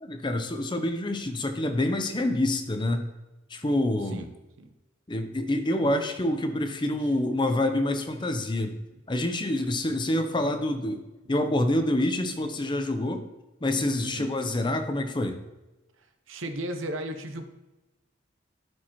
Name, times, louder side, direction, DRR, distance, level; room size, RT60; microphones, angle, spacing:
voice 1, 0.0-3.1 3.5-4.3 5.1-8.8 9.1-13.3 13.6-15.4, left 1 dB, 25° left, 7 dB, 0.6 m, -27 dB
voice 2, 14.0-14.4 16.3-17.5, right 1 dB, 75° right, 7 dB, 0.9 m, -35 dB
12.5 x 4.7 x 3.0 m, 1.1 s
head